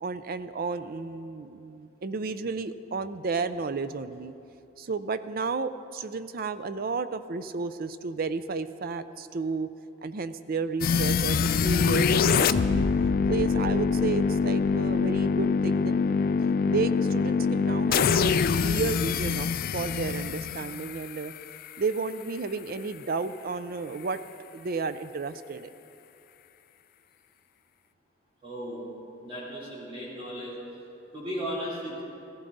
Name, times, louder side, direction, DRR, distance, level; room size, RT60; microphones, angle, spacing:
voice 1, 0.0-4.3 4.8-9.7 10.0-12.9 13.3-16.2 16.7-21.3 21.8-24.2 24.5-25.7, right 4 dB, 45° right, 12 dB, 0.4 m, -32 dB
sound 1, 10.8-21.8, left 5 dB, 45° left, 0.3 m, -24 dB
voice 2, 28.4-28.9 29.2-30.5 31.1-32.0, equal, 25° right, -8 dB, 3.4 m, -35 dB
15.0 x 15.0 x 4.0 m, 2.7 s
head